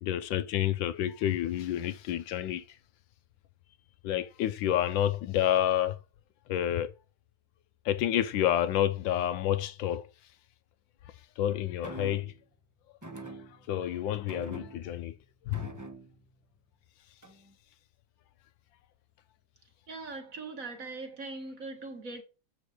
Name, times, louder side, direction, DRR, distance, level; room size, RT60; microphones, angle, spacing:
voice 1, 0.0-2.8 4.0-6.0 6.5-6.9 7.8-10.1 11.1-12.3 13.5-15.2 15.4-15.7, left 11 dB, 75° left, 1.3 m, -29 dB
sound 1, 11.8-12.4 13.0-13.9 14.3-15.1 15.5-16.3 17.2-17.5, right 2 dB, 15° right, 0.7 m, -45 dB
voice 2, 19.9-22.2, right 3 dB, 45° right, 1.8 m, -41 dB
8.1 x 5.8 x 4.9 m
omnidirectional pair, 2.2 m